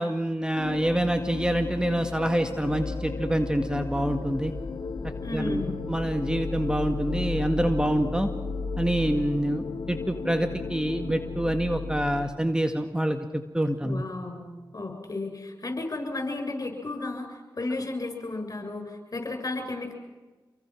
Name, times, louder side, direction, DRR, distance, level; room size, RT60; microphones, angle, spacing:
voice 1, 0.0-4.5 5.3-8.3 8.8-14.0, right 1 dB, 10° right, 6 dB, 1.9 m, -26 dB
sound 1, 0.6-12.3, left 4 dB, 70° left, 2.0 m, -34 dB
voice 2, 5.2-5.8 13.8-14.5 14.7-19.9, left 2 dB, 45° left, 4 dB, 7.9 m, -33 dB
28.0 x 22.5 x 6.3 m, 1.3 s
cardioid pair, 50°, 8 cm